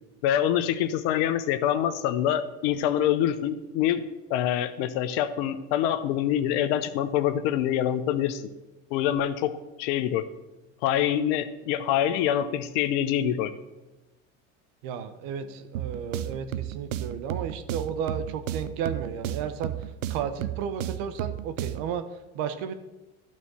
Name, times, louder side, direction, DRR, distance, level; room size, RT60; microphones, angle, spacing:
voice 1, 0.2-4.0 4.3-8.5 8.9-10.2 10.8-13.5, left 10 dB, 70° left, 12 dB, 0.9 m, -25 dB
voice 2, 14.8-22.8, right 7 dB, 65° right, 10 dB, 1.0 m, -33 dB
sound 1, 15.7-22.0, right 12 dB, 85° right, 0.6 m, -34 dB
12.0 x 4.2 x 6.3 m, 1.0 s
hypercardioid pair, 85°, 37 cm